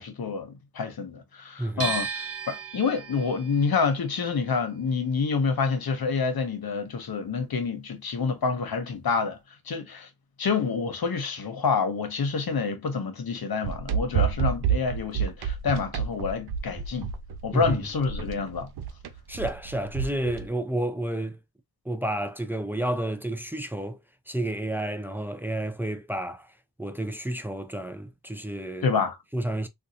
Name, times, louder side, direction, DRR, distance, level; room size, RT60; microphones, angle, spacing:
voice 1, 0.0-9.4 9.7-10.1 10.4-17.1 17.4-18.7 28.8-29.2, left 5 dB, 70° left, 0.9 m, -28 dB
voice 2, 1.6-1.9 17.5-17.8 19.3-21.4 21.8-24.0 24.3-26.5 26.8-29.0 29.3-29.7, right 1 dB, 5° right, 0.5 m, -30 dB
sound 1, 1.8-7.8 8.1-9.4, right 5 dB, 40° right, 0.9 m, -37 dB
sound 2, 13.6-20.5, right 7 dB, 90° right, 0.6 m, -29 dB
3.7 x 2.3 x 2.7 m
wide cardioid pair, 75°, 37 cm